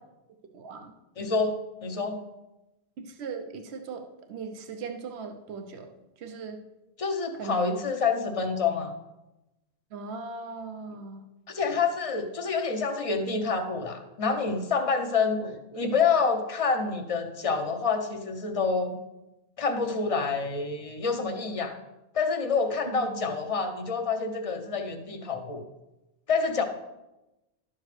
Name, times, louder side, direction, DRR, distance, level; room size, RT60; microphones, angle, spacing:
voice 1, 0.5-0.9 3.0-4.0 4.3-5.9 6.2-6.6 7.4-7.8 9.9-11.2 21.2-21.3 22.8-23.3 26.6-26.7, right 4 dB, 75° right, 5 dB, 1.0 m, -38 dB
voice 2, 1.2-2.2 7.0-8.9 11.5-19.0 19.6-21.7 22.1-25.6 26.3-26.6, left 5 dB, 35° left, 6 dB, 0.8 m, -27 dB
11.0 x 7.1 x 3.2 m, 0.98 s
omnidirectional pair, 1.1 m